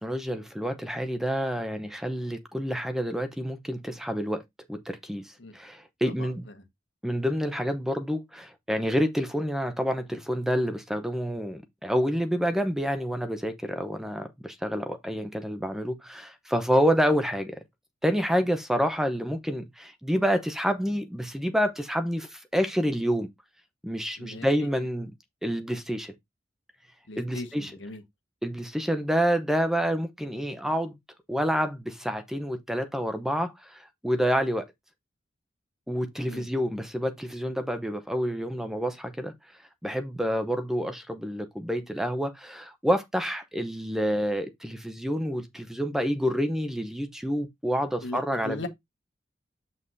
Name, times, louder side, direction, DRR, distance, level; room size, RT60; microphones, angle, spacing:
voice 1, 0.0-4.4 4.7-6.4 7.0-17.6 18.0-23.3 23.8-25.1 25.4-26.1 27.2-27.7 28.4-31.0 31.3-34.7 35.9-39.3 39.8-48.7, equal, ahead, 0.7 m, -28 dB
voice 2, 6.1-6.6 24.2-24.7 27.1-28.0 36.2-36.5 48.0-48.7, left 2 dB, 85° left, 1.4 m, -39 dB
8.0 x 5.5 x 2.6 m
head